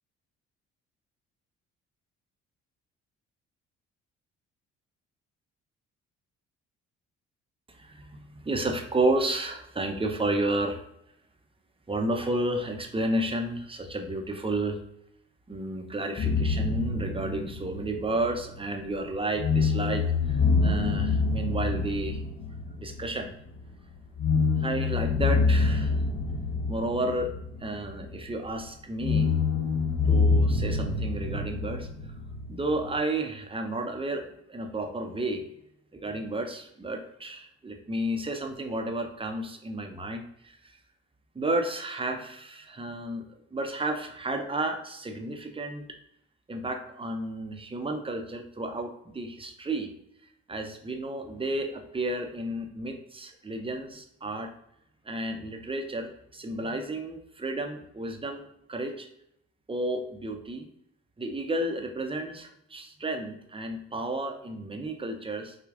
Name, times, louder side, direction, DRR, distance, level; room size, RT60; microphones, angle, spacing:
voice 1, 7.7-10.8 11.9-14.8 15.5-22.2 22.8-23.4 24.6-26.0 26.7-27.3 27.6-29.3 30.0-31.9 32.5-35.4 35.9-40.7 41.3-45.9 46.5-49.9 50.5-54.5 55.0-58.4 58.7-59.1 59.7-60.7 61.2-65.6, right 2 dB, 20° right, 4 dB, 0.7 m, -32 dB
sound 1, 16.2-19.0 19.4-23.6 24.2-28.3 29.0-33.0, left 4 dB, 40° left, 1.0 m, -26 dB
4.7 x 2.4 x 2.5 m, 0.75 s
supercardioid pair, 65°, 30 cm